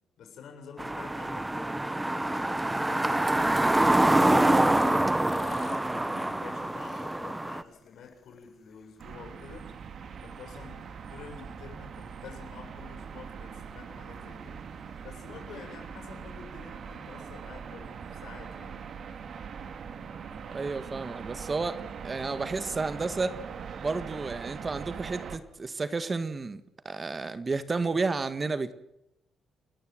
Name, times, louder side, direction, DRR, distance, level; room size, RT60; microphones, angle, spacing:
voice 1, 0.2-9.8 10.2-14.7 15.0-18.9, left 6 dB, 75° left, 4 dB, 7.4 m, -48 dB
sound 1, 0.8-7.6, right 1 dB, 10° right, 1.1 m, -25 dB
sound 2, 4.2-8.5 9.0-9.1, left 6 dB, 50° left, 1.1 m, -41 dB
sound 3, 9.0-25.4, right 6 dB, 55° right, 2.4 m, -42 dB
voice 2, 20.5-23.3 23.8-28.7, right 3 dB, 30° right, 12 dB, 1.7 m, -31 dB
29.5 x 14.0 x 8.0 m, 0.85 s
cardioid pair, 90°, 0 cm